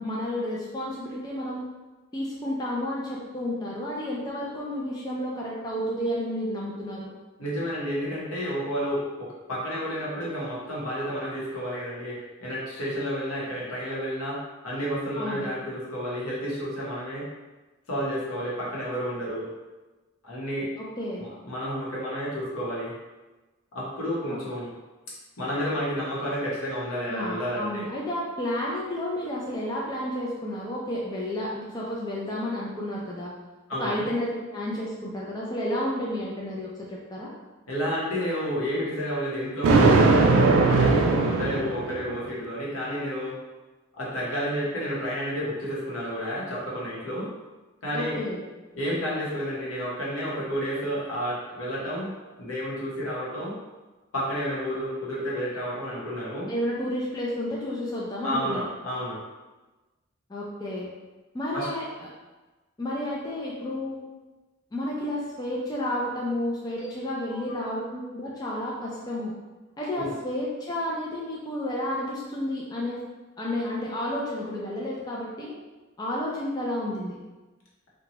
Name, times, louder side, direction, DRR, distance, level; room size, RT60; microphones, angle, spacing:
voice 1, 0.0-1.6 2.1-7.1 15.1-15.5 20.8-21.3 27.1-33.3 33.8-37.3 47.9-48.4 56.5-58.6 60.3-60.9 61.3-62.1 62.8-64.0 64.7-69.3 69.8-73.0 73.4-75.5 76.0-77.2, left 1 dB, 20° left, -4 dB, 0.3 m, -31 dB
voice 2, 7.4-17.3 17.9-19.5 20.2-20.7 21.2-22.9 23.7-24.7 25.4-27.9 33.7-34.1 37.7-43.4 44.0-47.3 47.8-48.2 48.7-52.1 52.4-53.5 54.1-56.5 58.2-59.2 61.5-61.7 66.8-66.9 67.3-67.6 69.9-70.1, equal, 85° left, -6 dB, 0.9 m, -31 dB
Thunder, 39.6-42.2, right 3 dB, 80° right, 0.3 m, -19 dB
2.7 x 2.2 x 2.9 m, 1.2 s
head